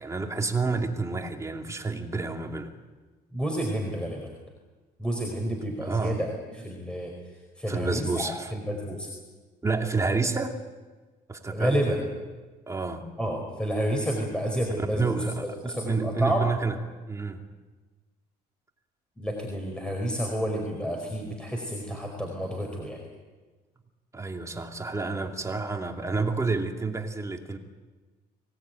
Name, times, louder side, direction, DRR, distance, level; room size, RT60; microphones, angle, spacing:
voice 1, 0.0-2.7 5.8-6.2 7.7-8.5 9.6-10.6 11.3-12.0 12.7-13.1 14.8-16.8 17.1-17.4 24.1-27.6, right 4 dB, 20° right, 3 dB, 2.6 m, -29 dB
voice 2, 3.3-4.2 5.0-7.1 7.6-9.1 11.5-12.0 13.2-15.2 15.6-16.4 19.2-23.0, equal, 5° left, 0 dB, 4.7 m, -30 dB
24.5 x 18.0 x 9.2 m, 1.3 s
cardioid pair, 110°, 17 cm